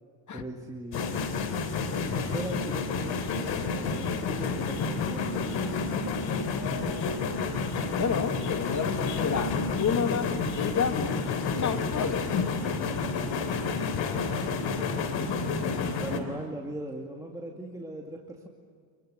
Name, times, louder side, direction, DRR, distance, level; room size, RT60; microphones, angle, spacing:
voice 1, 0.3-1.1 1.9-5.8 14.1-15.5 15.9-18.5, right 1 dB, 10° right, -1 dB, 2.4 m, -40 dB
sound 1, 0.9-16.2, left 4 dB, 65° left, 3.4 m, -30 dB
voice 2, 8.0-11.2 11.6-12.6, left 7 dB, 40° left, 7 dB, 2.1 m, -30 dB
28.0 x 23.0 x 8.2 m, 2.1 s
cardioid pair, 105°, 46 cm